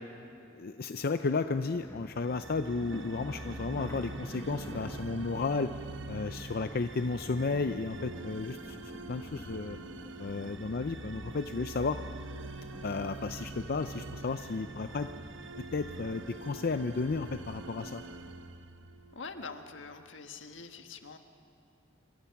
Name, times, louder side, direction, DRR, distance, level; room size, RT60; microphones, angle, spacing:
voice 1, 0.5-5.7 6.1-8.8 9.1-9.8 10.2-12.0 12.8-15.1 15.7-18.0, left 4 dB, 55° left, 9 dB, 0.5 m, -33 dB
sound 1, 1.5-18.4, equal, 15° left, 2.0 m, -49 dB
sound 2, 2.2-19.3, right 2 dB, 75° right, 1.0 m, -45 dB
voice 2, 19.1-21.2, left 4 dB, 80° left, 6 dB, 1.5 m, -44 dB
28.5 x 24.0 x 5.9 m, 2.7 s
head